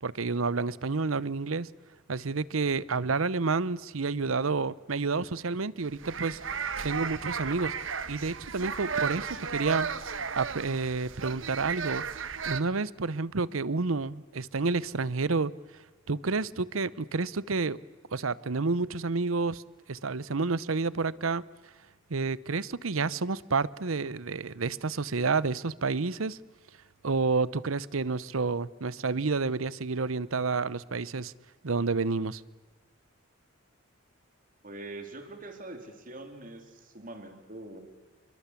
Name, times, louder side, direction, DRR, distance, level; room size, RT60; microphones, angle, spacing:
voice 1, 0.0-1.7 2.1-6.4 6.8-7.7 8.1-9.9 10.4-12.0 12.5-15.5 16.1-17.8 18.1-19.6 19.9-21.4 22.1-26.4 27.0-31.3 31.6-32.4, right 4 dB, 85° right, 19 dB, 0.8 m, -29 dB
sound 1, 5.9-12.6, right 6 dB, 70° right, 1.3 m, -34 dB
voice 2, 34.6-37.8, right 2 dB, 40° right, 6 dB, 3.6 m, -43 dB
28.0 x 24.0 x 8.4 m, 1.3 s
head